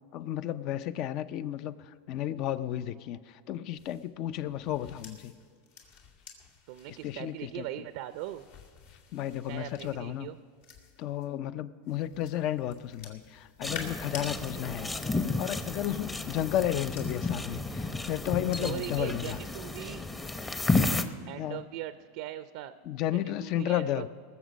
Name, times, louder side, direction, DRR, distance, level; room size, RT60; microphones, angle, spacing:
voice 1, 0.1-1.7 2.1-5.3 7.0-7.7 9.1-10.3 11.0-14.9 15.4-19.4 21.3-21.6 22.9-24.1, left 12 dB, 50° left, 15 dB, 0.5 m, -33 dB
sound 1, 3.7-11.3 11.8-14.3 15.6-19.8 20.2-20.5, left 6 dB, 70° left, 2.2 m, -50 dB
voice 2, 6.7-8.5 9.4-10.4 18.6-20.0 21.3-22.7 23.1-24.1, right 13 dB, 65° right, 11 dB, 0.5 m, -40 dB
sound 2, 13.6-21.0, left 3 dB, 15° left, 0.8 m, -32 dB
20.0 x 7.3 x 5.2 m, 2.2 s
supercardioid pair, 125°, 0 cm